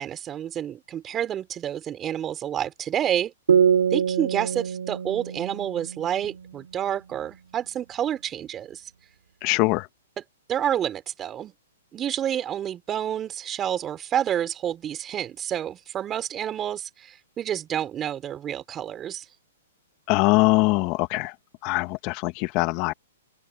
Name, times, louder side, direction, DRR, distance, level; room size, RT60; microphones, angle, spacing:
voice 1, 0.0-3.3 3.9-8.8 10.5-11.5 11.9-19.3, right 10 dB, 25° right, 3.7 m, -29 dB
sound 1, 3.5-7.0, right 7 dB, 80° right, 3.5 m, -24 dB
voice 2, 9.4-9.9 20.1-21.3 21.6-22.9, left 24 dB, 40° left, 1.6 m, -22 dB
open air
hypercardioid pair, 130°, 0 cm